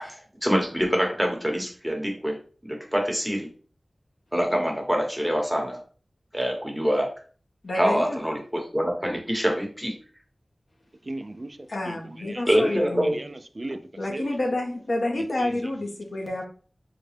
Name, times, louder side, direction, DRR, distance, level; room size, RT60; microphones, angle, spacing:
voice 1, 0.0-3.5 4.3-5.8 6.3-7.1 7.7-9.9 12.5-13.1, equal, ahead, 1 dB, 1.0 m, -25 dB
voice 2, 7.6-8.2 11.7-13.2 14.0-16.5, left 1 dB, 70° left, 1 dB, 0.8 m, -29 dB
voice 3, 11.0-13.8 14.1-14.4 15.4-15.7, right 2 dB, 40° right, 8 dB, 0.4 m, -38 dB
3.8 x 2.2 x 3.3 m, 0.40 s
wide cardioid pair, 60°, 0 cm